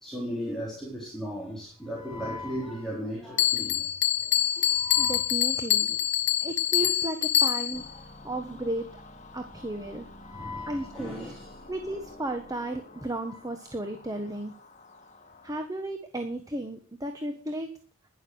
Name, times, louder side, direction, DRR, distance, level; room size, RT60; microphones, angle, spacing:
voice 1, 0.0-3.8 4.8-5.2 8.4-8.6 10.3-11.5, equal, ahead, 4.1 m, -36 dB
Bell, 3.4-7.9, left 11 dB, 60° left, 1.0 m, -25 dB
voice 2, 5.0-6.0 6.4-7.9 8.2-9.0 9.3-10.1 10.7-11.3 11.7-14.5 15.4-17.7, right 1 dB, 15° right, 1.4 m, -34 dB
sound 1, 7.7-15.7, left 2 dB, 35° left, 2.3 m, -49 dB
11.5 x 11.0 x 6.4 m
head